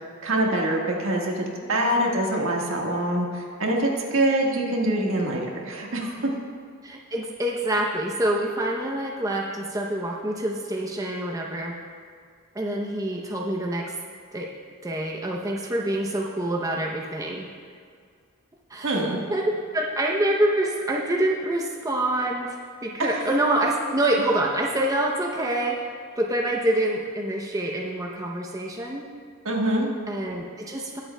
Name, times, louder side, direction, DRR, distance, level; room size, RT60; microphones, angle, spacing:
voice 1, 0.2-6.3 18.8-19.2 29.4-29.9, right 1 dB, 75° right, -1 dB, 1.5 m, -24 dB
voice 2, 1.6-2.1 5.3-5.4 6.8-11.8 12.5-13.9 14.3-14.5 14.8-17.4 18.7-19.0 19.3-19.4 19.7-22.6 22.8-25.9 26.2-29.0 30.1-31.0, right 1 dB, 15° right, -1 dB, 0.7 m, -26 dB
21.0 x 7.5 x 2.2 m, 2.1 s
head